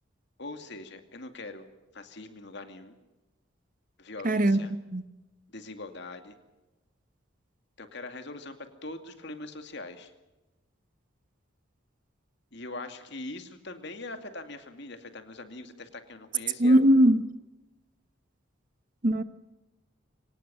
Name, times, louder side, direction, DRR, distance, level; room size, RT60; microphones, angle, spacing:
voice 1, 0.4-1.7 1.9-2.9 4.0-4.7 5.5-6.4 7.8-8.6 8.8-10.1 12.5-16.8, left 2 dB, 55° left, 2.4 m, -42 dB
voice 2, 4.2-4.6 4.9-5.0 16.6-17.2 19.0-19.2, right 1 dB, 40° right, 1.2 m, -20 dB
24.0 x 19.0 x 7.6 m
head